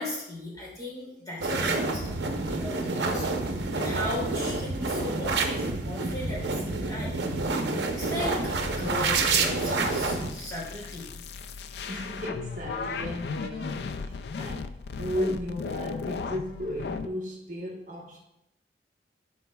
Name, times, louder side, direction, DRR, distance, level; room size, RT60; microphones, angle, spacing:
voice 1, 0.0-3.3 3.7-7.2 7.9-11.2, left 1 dB, 20° left, -5 dB, 2.4 m, -36 dB
sound 1, 1.4-10.3, right 3 dB, 85° right, 0.7 m, -28 dB
sound 2, 8.1-17.1, left 4 dB, 65° left, 0.3 m, -37 dB
voice 2, 11.9-18.2, equal, 45° right, -2 dB, 1.0 m, -35 dB
11.0 x 4.2 x 2.3 m, 0.81 s
head